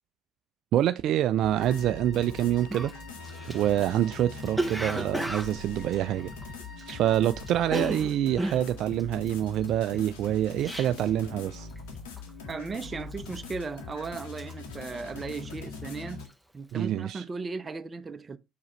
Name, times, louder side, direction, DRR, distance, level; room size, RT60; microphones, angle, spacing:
voice 1, 0.7-2.9 3.5-6.3 6.9-11.7 16.7-17.2, right 12 dB, 60° right, 0.4 m, -26 dB
sound 1, 1.4-16.3, left 4 dB, 80° left, 1.8 m, -42 dB
Wind instrument woodwind instrument, 1.6-7.9, left 1 dB, 45° left, 1.9 m, -50 dB
Cough, 2.3-2.4 2.7-7.2 7.4-11.2 11.5-11.9 12.2-12.6 13.1-13.7 14.0-15.7 16.0-16.3, right 1 dB, ahead, 1.1 m, -35 dB
voice 2, 12.5-16.2 16.5-18.4, right 4 dB, 30° right, 0.8 m, -36 dB
7.5 x 4.6 x 3.2 m
hypercardioid pair, 60°, 0 cm